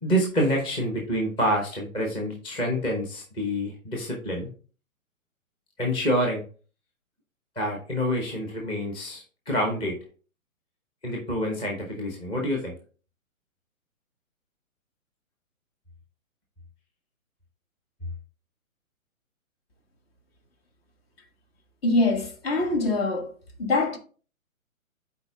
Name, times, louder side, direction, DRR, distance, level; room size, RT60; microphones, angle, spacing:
voice 1, 0.0-4.5 5.8-6.4 7.6-10.0 11.0-12.7, equal, 10° left, 0.9 m, -27 dB
voice 2, 21.8-23.3 23.6-24.0, left 2 dB, 45° left, 1.6 m, -24 dB
12.0 x 4.6 x 2.3 m
hypercardioid pair, 135°, 41 cm